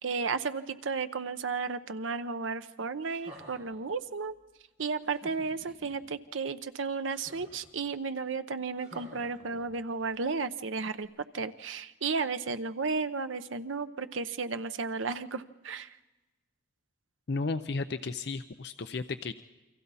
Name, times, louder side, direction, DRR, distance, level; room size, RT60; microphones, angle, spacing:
voice 1, 0.0-4.3 4.8-11.1 11.3-15.9, right 4 dB, 90° right, 11 dB, 0.8 m, -33 dB
sound 1, 3.0-3.8 5.0-5.9 7.0-7.7 8.8-9.9 11.0-11.1, equal, 35° right, 5.8 m, -52 dB
voice 2, 17.3-19.3, left 3 dB, 55° left, 9 dB, 0.6 m, -33 dB
29.0 x 24.5 x 4.1 m, 1.1 s
head